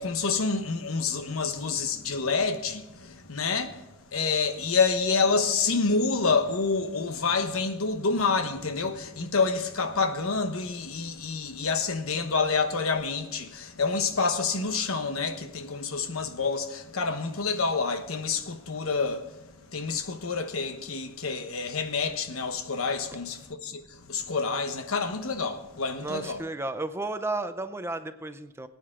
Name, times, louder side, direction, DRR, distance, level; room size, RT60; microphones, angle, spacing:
voice 1, 0.0-26.4, left 4 dB, 80° left, 1.1 m, -28 dB
voice 2, 26.0-28.7, right 2 dB, 10° right, 0.6 m, -33 dB
19.5 x 9.3 x 3.7 m
head